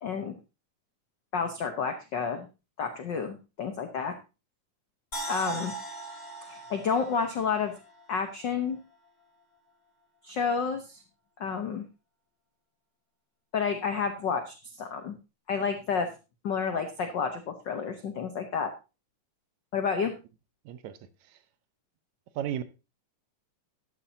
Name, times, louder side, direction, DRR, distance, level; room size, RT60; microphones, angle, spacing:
voice 1, 0.0-0.4 1.3-2.5 2.8-4.2 5.3-5.7 6.5-7.7 8.1-8.8 10.2-11.0 11.4-11.9 13.5-15.2 15.5-16.1 16.4-18.7 19.7-20.1, left 6 dB, 90° left, 0.9 m, -30 dB
sound 1, 5.1-8.3 8.7-8.8, right 3 dB, 30° left, 3.6 m, -39 dB
voice 2, 20.7-21.0 22.4-22.6, right 10 dB, 75° right, 2.1 m, -33 dB
13.0 x 11.0 x 2.7 m
omnidirectional pair, 3.5 m